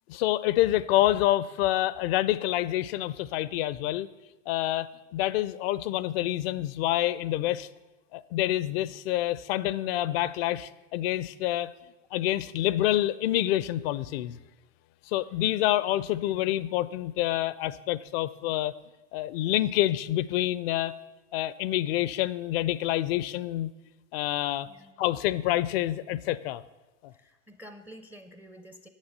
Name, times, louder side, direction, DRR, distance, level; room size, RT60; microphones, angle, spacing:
voice 1, 0.1-4.1 4.5-7.7 8.1-11.7 12.1-14.4 15.1-18.7 19.1-21.0 21.3-23.7 24.1-24.7 25.0-26.6, left 14 dB, 50° left, 18 dB, 0.4 m, -27 dB
voice 2, 24.6-25.0 27.1-28.9, equal, 5° right, 8 dB, 0.4 m, -49 dB
7.4 x 7.3 x 6.6 m, 1.1 s
hypercardioid pair, 95°, 40 cm